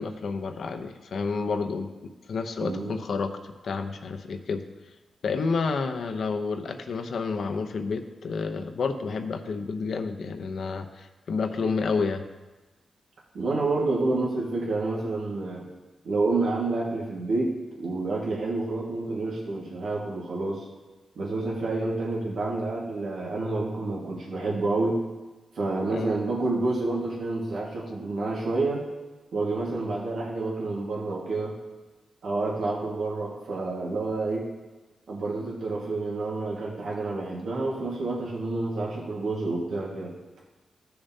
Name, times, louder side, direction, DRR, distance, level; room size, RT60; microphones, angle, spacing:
voice 1, 0.0-4.6 5.2-12.2 25.9-26.1, left 4 dB, 70° left, 6 dB, 0.7 m, -30 dB
voice 2, 2.6-3.0 13.3-15.7 16.0-20.7 21.2-25.0 25.5-28.8 29.3-31.6 32.2-34.4 35.1-40.1, right 2 dB, 75° right, -4 dB, 1.7 m, -29 dB
15.5 x 6.7 x 2.8 m, 1.2 s
wide cardioid pair, 100°, 0 cm